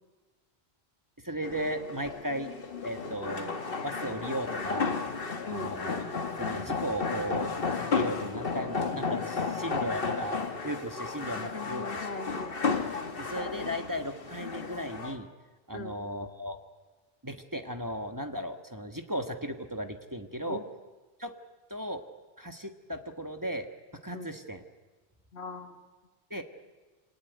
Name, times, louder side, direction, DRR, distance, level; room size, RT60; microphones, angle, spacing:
voice 1, 1.2-2.5 2.8-3.5 3.8-5.0 5.5-6.0 6.4-11.8 13.2-15.3 15.7-16.6 17.2-20.6 21.2-21.3 21.7-22.0 22.4-23.7 24.0-24.6 26.3-26.4, equal, 20° right, 6 dB, 1.4 m, -36 dB
sound 1, 1.4-15.2, left 4 dB, 60° left, 1.6 m, -33 dB
sound 2, 7.0-8.2 8.5-9.7 10.0-11.2 11.6-12.7, equal, ahead, 6.4 m, -55 dB
voice 2, 11.5-12.5 15.7-16.0 20.5-20.6 24.1-24.3 25.3-25.8, left 3 dB, 80° left, 6 dB, 2.1 m, -39 dB
26.0 x 18.5 x 9.5 m, 1.3 s
omnidirectional pair, 1.0 m